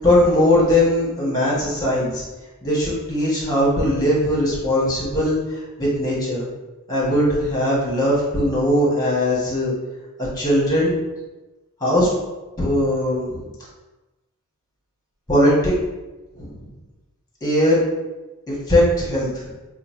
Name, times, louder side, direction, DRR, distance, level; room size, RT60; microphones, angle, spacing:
voice 1, 0.0-2.2 2.6-6.5 6.9-9.7 10.3-11.0 11.8-12.1 12.6-13.5 15.3-15.7 16.3-16.5 17.4-17.8 18.5-19.5, left 1 dB, 15° left, -6 dB, 1.3 m, -19 dB
3.2 x 2.4 x 4.3 m, 1.1 s
head